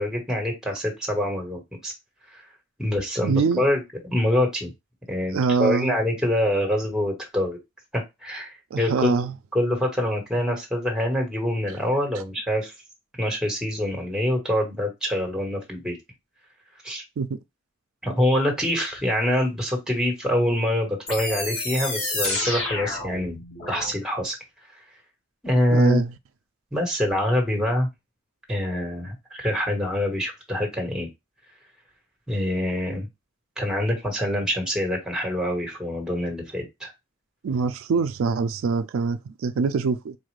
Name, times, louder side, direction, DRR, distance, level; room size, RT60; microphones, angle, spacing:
voice 1, 0.0-1.9 2.3-2.4 2.8-4.7 5.1-7.6 7.9-9.1 9.5-12.7 13.2-16.0 16.8-17.0 18.0-23.4 23.7-24.3 25.4-26.0 26.7-27.9 28.5-31.1 32.3-33.1 33.6-36.9, left 1 dB, 5° right, 1.3 m, -25 dB
voice 2, 3.2-3.6 5.3-5.9 8.7-9.3 17.2-17.3 25.7-26.1 37.4-40.1, right 5 dB, 80° right, 0.4 m, -24 dB
sound 1, 21.1-23.9, left 2 dB, 70° left, 2.3 m, -29 dB
4.2 x 2.4 x 3.1 m
head